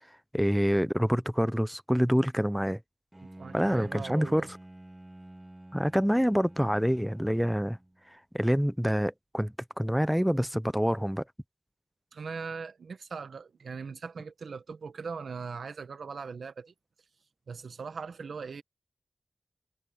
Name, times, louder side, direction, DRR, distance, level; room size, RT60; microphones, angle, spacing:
voice 1, 0.1-2.8 3.5-4.6 5.7-7.8 8.1-11.2, equal, ahead, 0.7 m, -27 dB
Bowed string instrument, 3.1-8.1, right 1 dB, 20° right, 3.8 m, -49 dB
voice 2, 3.2-4.5 12.1-16.7 17.5-18.6, right 5 dB, 80° right, 1.6 m, -40 dB
cardioid pair, 50°, 0 cm